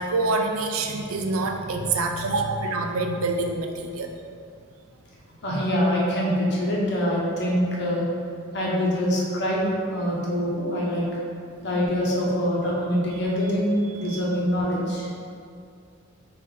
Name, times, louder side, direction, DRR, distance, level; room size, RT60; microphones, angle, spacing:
voice 1, 0.0-4.2 13.1-13.2 14.0-14.2, right 3 dB, 85° right, 4 dB, 0.5 m, -26 dB
voice 2, 5.4-8.0 8.5-11.1 11.6-15.1, equal, 60° left, -4 dB, 1.0 m, -24 dB
5.2 x 2.7 x 3.8 m, 2.3 s
head